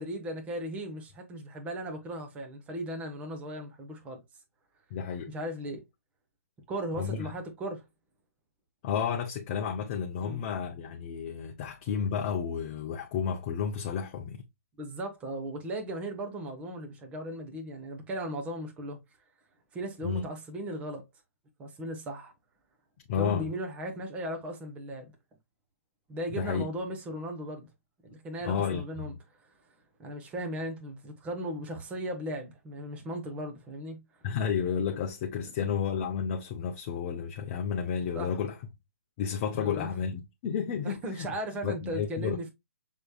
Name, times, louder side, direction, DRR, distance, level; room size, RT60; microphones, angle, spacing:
voice 1, 0.0-4.2 5.3-5.8 6.7-7.8 10.2-10.5 14.8-19.0 19.7-21.0 21.6-22.3 23.1-25.1 26.1-27.7 28.0-29.1 29.4-29.5 30.0-34.0 35.4-35.5 38.1-38.4 39.6-39.9 40.8-42.5, right 1 dB, 15° right, 1.2 m, -37 dB
voice 2, 4.9-5.3 7.0-7.3 8.8-14.4 20.0-20.2 23.1-23.5 26.4-26.7 28.4-29.2 34.2-38.6 39.2-41.3 41.6-42.4, left 7 dB, 35° left, 0.7 m, -31 dB
6.2 x 3.4 x 2.3 m
hypercardioid pair, 140°, 8 cm